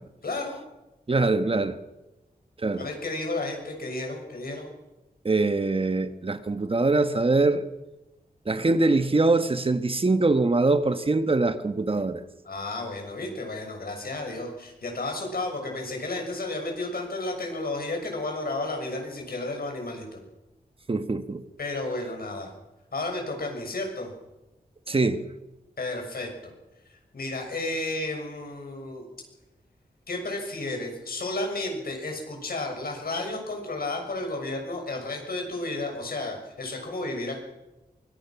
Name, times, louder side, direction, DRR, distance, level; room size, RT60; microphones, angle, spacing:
voice 1, 0.2-0.6 2.7-4.7 12.4-20.2 21.6-22.5 22.9-24.1 25.8-26.5 27.1-29.1 30.1-37.4, left 2 dB, 70° left, 6.6 m, -32 dB
voice 2, 1.1-1.8 2.6-2.9 5.2-7.6 8.5-12.2 20.9-21.4 24.9-25.2, right 3 dB, 35° right, 1.2 m, -23 dB
24.0 x 22.0 x 6.0 m
wide cardioid pair, 110°, 16 cm